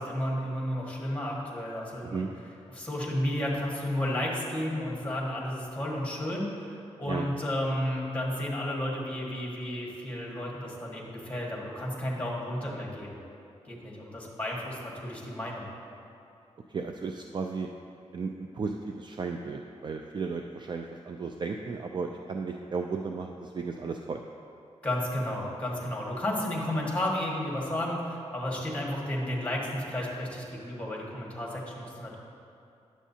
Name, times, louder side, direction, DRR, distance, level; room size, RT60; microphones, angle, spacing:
voice 1, 0.0-2.3 2.7-6.7 7.0-13.2 13.7-15.7 24.8-32.2, left 1 dB, 10° left, -3 dB, 1.6 m, -32 dB
voice 2, 16.7-17.7 18.1-24.2, right 4 dB, 40° right, 3 dB, 0.3 m, -34 dB
9.9 x 7.2 x 2.8 m, 2.6 s
wide cardioid pair, 100°, 12 cm